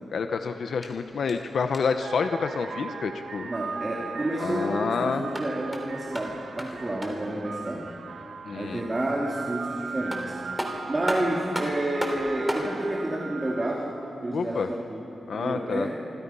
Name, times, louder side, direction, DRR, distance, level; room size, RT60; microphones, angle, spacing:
voice 1, 0.1-3.5 4.4-5.3 8.5-8.8 14.3-14.7 15.3-15.9, left 5 dB, 60° left, 7 dB, 0.9 m, -28 dB
sound 1, 0.8-2.1 5.1-7.4 9.6-9.7 10.1-12.7, equal, 5° right, 3.1 m, -35 dB
sound 2, 1.5-1.6 1.9-14.0, right 5 dB, 65° right, 1.2 m, -39 dB
voice 2, 3.4-7.9 8.5-10.3 10.9-16.0, right 1 dB, 20° right, -2 dB, 2.4 m, -30 dB
28.0 x 24.0 x 5.6 m, 3.0 s
wide cardioid pair, 170°, 0 cm